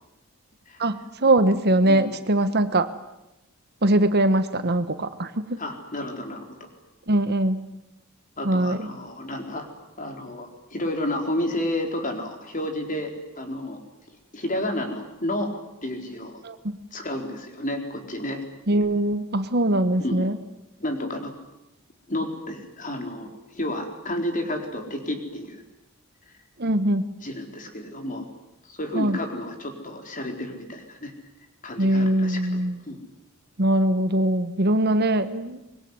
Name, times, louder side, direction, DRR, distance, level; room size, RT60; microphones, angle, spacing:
voice 1, 0.8-2.9 3.8-5.6 7.1-7.7 8.4-8.9 16.4-16.6 18.7-20.4 26.6-27.0 28.9-29.2 31.8-32.8 33.6-35.8, right 1 dB, 45° right, 11 dB, 1.3 m, -22 dB
voice 2, 1.9-2.2 5.6-6.7 8.4-9.7 10.0-13.8 14.3-15.5 15.8-16.4 16.9-18.4 20.0-20.3 20.8-21.3 22.1-25.6 27.2-28.3 28.6-31.1 31.6-33.0, left 1 dB, 35° left, 4 dB, 4.3 m, -31 dB
24.5 x 21.5 x 9.7 m, 0.95 s
head